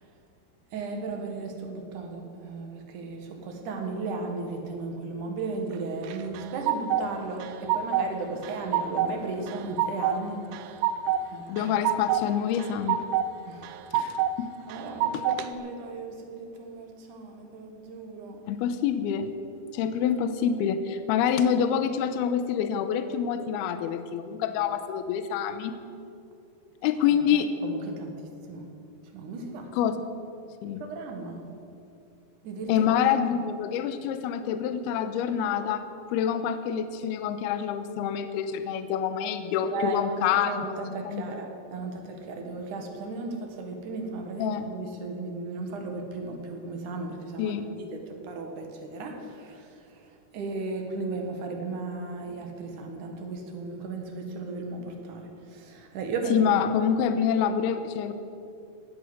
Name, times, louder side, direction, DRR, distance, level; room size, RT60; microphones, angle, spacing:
voice 1, 0.7-10.4 10.7-10.8 11.3-11.7 13.4-13.7 14.7-18.4 27.6-28.2 28.5-28.7 29.1-29.7 30.8-31.4 32.4-32.9 33.3-33.4 39.6-49.8 50.3-56.4, right 3 dB, 55° right, 3 dB, 2.7 m, -35 dB
sound 1, 6.0-7.1 7.4-8.1 8.4-9.1 9.5-10.2 10.5-11.2 11.6-12.2 12.6-13.3 13.6-14.3 14.7-15.5, right 10 dB, 80° right, 2.4 m, -26 dB
voice 2, 11.5-13.0 13.9-14.5 15.1-15.2 18.5-19.3 19.7-25.7 26.8-27.5 29.7-30.1 30.6-30.8 32.7-35.8 36.1-41.3 44.4-44.6 47.4-47.7 56.3-58.1, left 8 dB, 75° left, 10 dB, 2.6 m, -27 dB
16.5 x 9.4 x 8.0 m, 2.6 s
omnidirectional pair, 5.0 m